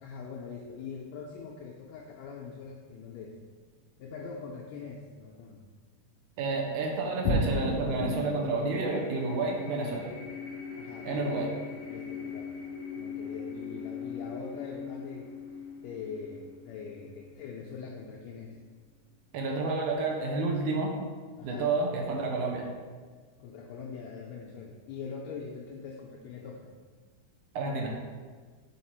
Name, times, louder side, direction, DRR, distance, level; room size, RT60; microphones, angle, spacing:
voice 1, 0.0-3.4 4.0-5.6 10.7-11.5 11.9-12.6 12.9-15.3 15.8-18.6 21.4-21.7 23.4-26.7, left 5 dB, 85° left, -1 dB, 1.5 m, -42 dB
voice 2, 6.4-10.1 11.0-11.5 19.3-20.9 21.4-22.7 27.5-27.9, right 3 dB, 80° right, 1 dB, 2.2 m, -30 dB
sound 1, 7.2-17.9, left 2 dB, 25° left, 1.0 m, -37 dB
6.5 x 3.6 x 4.3 m, 1.5 s
omnidirectional pair, 3.6 m